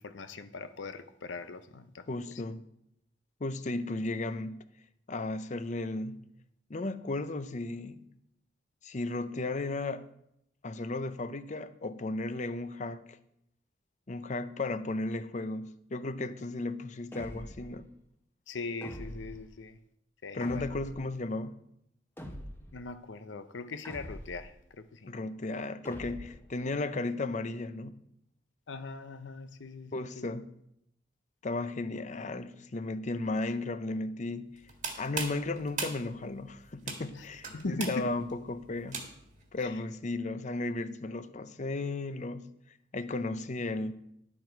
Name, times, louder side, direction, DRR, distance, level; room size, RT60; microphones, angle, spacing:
voice 1, 0.0-2.4 18.5-19.8 20.2-20.7 22.7-25.1 28.7-30.3 37.1-37.3 37.5-38.1 39.6-39.8, left 3 dB, 80° left, 0.7 m, -40 dB
voice 2, 2.1-2.7 3.4-4.6 5.1-6.3 6.7-8.0 8.8-10.0 10.6-13.2 14.1-17.8 20.3-21.6 25.1-28.0 29.9-30.5 31.4-34.6 35.0-39.0 39.5-42.5 42.9-43.9, left 2 dB, 40° left, 0.6 m, -35 dB
sound 1, 17.1-17.8 18.8-19.4 20.4-21.1 22.2-22.8 23.8-24.5 25.8-26.5, equal, 10° left, 0.9 m, -44 dB
sound 2, 34.6-39.4, right 5 dB, 45° right, 1.6 m, -40 dB
11.0 x 7.4 x 4.6 m
head